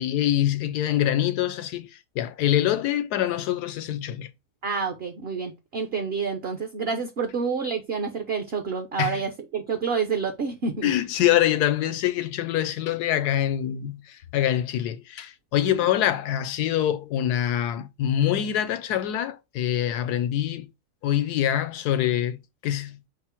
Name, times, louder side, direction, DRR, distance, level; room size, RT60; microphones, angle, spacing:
voice 1, 0.0-1.9 2.1-4.3 9.0-9.2 10.8-20.7 21.0-23.1, left 11 dB, 85° left, 1.2 m, -25 dB
voice 2, 4.6-10.9 15.6-15.8, right 5 dB, 55° right, 0.7 m, -28 dB
5.9 x 2.0 x 4.3 m
omnidirectional pair, 1.7 m